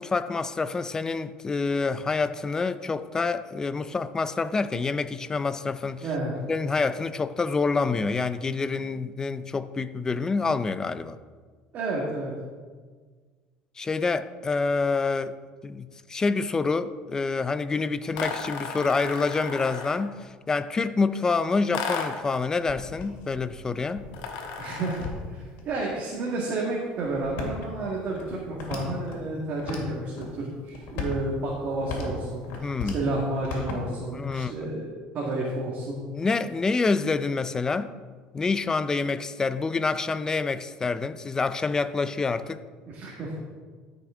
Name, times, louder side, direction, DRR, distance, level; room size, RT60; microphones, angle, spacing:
voice 1, 0.0-6.1 6.5-11.2 13.8-15.3 15.6-24.0 32.6-33.0 34.1-34.6 36.1-37.9 38.3-42.6, left 4 dB, 20° left, 0.4 m, -27 dB
voice 2, 6.0-6.4 11.7-12.3 24.6-32.5 32.9-34.9 35.1-36.0 42.9-43.3, right 2 dB, 50° right, 1.8 m, -31 dB
sound 1, 18.1-20.1 21.7-22.3 24.1-25.2, left 5 dB, 90° left, 1.3 m, -34 dB
sound 2, 22.5-25.6 26.3-26.4 27.0-29.2 29.6-30.3 30.6-33.0 33.3-34.6, left 4 dB, 75° left, 2.3 m, -37 dB
13.5 x 6.0 x 3.7 m
cardioid pair, 120°, 3 cm